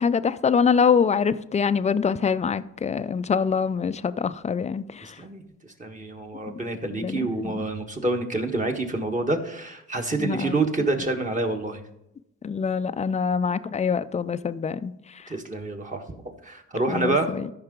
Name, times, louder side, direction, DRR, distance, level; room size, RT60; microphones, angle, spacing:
voice 1, 0.0-5.2 7.0-7.5 10.2-10.5 12.4-15.3 16.9-17.4, left 6 dB, 25° left, 0.4 m, -24 dB
voice 2, 5.0-5.4 5.8-11.9 15.3-17.3, right 2 dB, 25° right, 1.5 m, -27 dB
13.5 x 5.8 x 3.8 m
cardioid pair, 90°, 30 cm